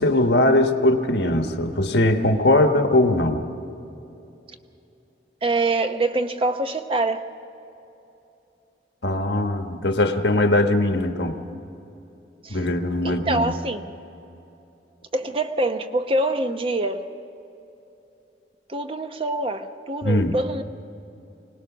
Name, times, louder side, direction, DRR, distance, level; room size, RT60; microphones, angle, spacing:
voice 1, 0.0-3.4 9.0-11.4 12.5-13.5 20.0-20.4, left 1 dB, 65° left, 6 dB, 1.3 m, -20 dB
voice 2, 5.4-7.2 12.4-12.6 13.0-13.9 15.1-17.1 18.7-20.6, right 2 dB, 30° right, 7 dB, 0.8 m, -25 dB
25.0 x 19.0 x 6.1 m, 2.8 s
head